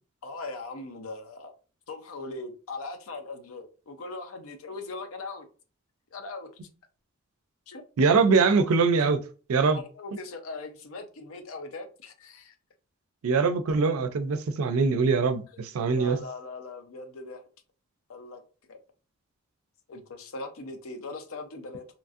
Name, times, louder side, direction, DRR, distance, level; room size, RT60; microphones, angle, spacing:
voice 1, 0.2-1.5 1.9-5.5 6.1-6.5 7.7-7.8 8.5-8.6 9.7-12.5 15.5-15.6 15.9-17.4 18.1-18.4 18.7-18.8 19.9-21.9, left 3 dB, 75° left, 0.6 m, -40 dB
voice 2, 8.0-9.2 9.5-9.8 13.2-16.2, right 4 dB, 80° right, 0.4 m, -23 dB
2.9 x 2.5 x 2.4 m
head